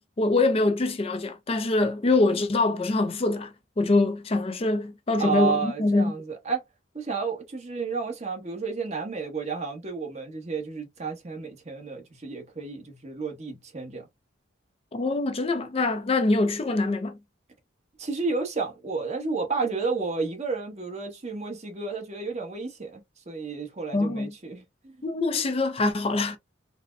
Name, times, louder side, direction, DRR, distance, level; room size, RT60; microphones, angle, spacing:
voice 1, 0.2-6.1 14.9-17.2 23.9-24.3 25.0-26.4, left 2 dB, 30° left, 0.4 m, -24 dB
voice 2, 5.2-6.6 6.9-14.0 18.0-25.0, right 4 dB, 35° right, 1.0 m, -31 dB
4.0 x 2.1 x 2.5 m
head